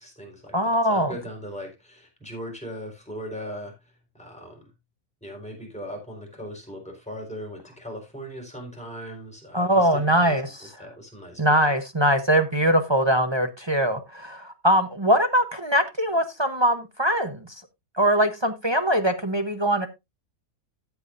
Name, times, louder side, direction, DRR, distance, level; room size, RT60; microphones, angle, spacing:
voice 1, 0.0-0.6 0.9-4.7 5.2-9.9 10.2-10.4 10.8-11.6, equal, 5° left, 4.3 m, -39 dB
voice 2, 0.5-1.1 9.5-10.7 11.4-17.5 18.0-19.9, equal, 30° right, 0.5 m, -22 dB
13.5 x 8.1 x 2.6 m
omnidirectional pair, 1.9 m